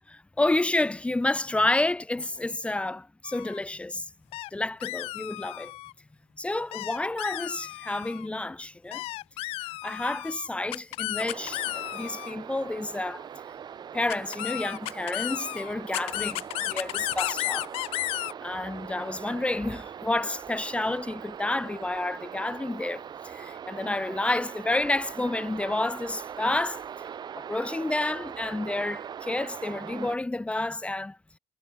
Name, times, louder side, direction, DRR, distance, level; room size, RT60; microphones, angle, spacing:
voice 1, 0.1-4.1 4.5-5.7 6.4-9.0 9.6-13.3 13.9-17.7 18.4-26.8 27.3-31.2, left 2 dB, 10° left, 1.4 m, -30 dB
sound 1, 3.2-3.6 4.3-4.5 4.8-5.9 6.7-8.3 8.9-12.3 14.1-18.3, left 19 dB, 75° left, 1.4 m, -33 dB
sound 2, 11.2-30.2, right 8 dB, 45° right, 4.9 m, -41 dB
supercardioid pair, 85°, 10 cm